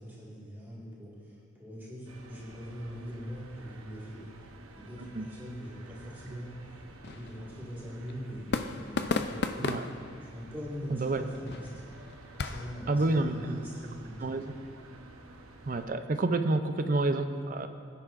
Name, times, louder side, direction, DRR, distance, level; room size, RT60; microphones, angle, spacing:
voice 1, 0.0-4.3 4.7-8.5 8.8-9.8 10.2-11.8 12.4-14.3, equal, 10° right, -8 dB, 1.8 m, -42 dB
sound 1, 2.1-15.9, right 2 dB, 90° right, 0.9 m, -52 dB
sound 2, 5.6-12.7, left 4 dB, 50° left, 0.4 m, -37 dB
voice 2, 10.9-11.2 12.9-13.6 14.2-14.6 15.7-17.7, right 2 dB, 40° right, 8 dB, 0.4 m, -29 dB
16.0 x 9.9 x 2.5 m, 2.2 s
head